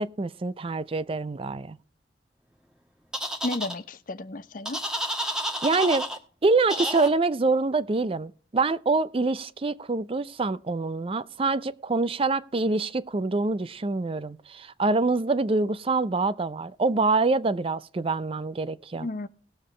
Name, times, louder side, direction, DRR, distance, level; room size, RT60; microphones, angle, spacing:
voice 1, 0.0-1.8 5.6-6.1 6.4-19.1, right 3 dB, 30° right, 0.5 m, -25 dB
sound 1, 3.1-3.7 4.7-6.2 6.7-7.1, equal, 5° right, 1.4 m, -30 dB
voice 2, 3.4-4.8 19.0-19.3, left 2 dB, 50° left, 0.7 m, -33 dB
19.0 x 7.3 x 3.2 m
head